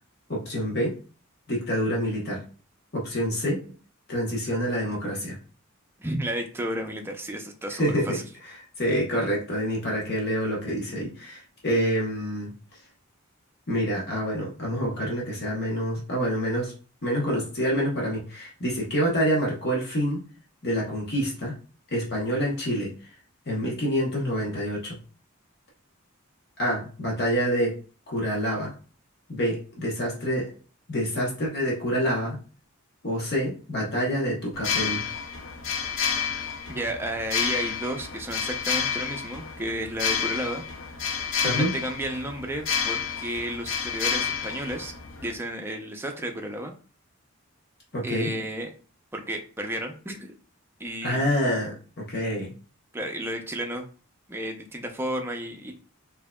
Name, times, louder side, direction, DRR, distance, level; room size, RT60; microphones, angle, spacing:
voice 1, 0.3-0.9 1.5-2.4 2.9-3.6 4.1-5.4 7.7-12.5 13.7-16.7 17.0-20.2 20.6-21.5 21.9-23.0 23.5-25.0 26.6-27.8 28.1-28.7 29.3-30.5 30.9-32.4 33.0-35.0 41.4-41.7 47.9-48.3 51.0-52.5, equal, 50° left, -3 dB, 1.0 m, -27 dB
voice 2, 6.0-8.3 36.7-40.6 41.4-44.9 45.2-46.7 48.0-48.7 49.1-50.3 50.8-51.2 52.9-53.8 54.3-55.7, right 1 dB, 10° right, 3 dB, 0.5 m, -32 dB
sound 1, 34.5-45.3, left 7 dB, 65° left, 0.6 m, -30 dB
4.6 x 2.7 x 2.2 m, 0.38 s
head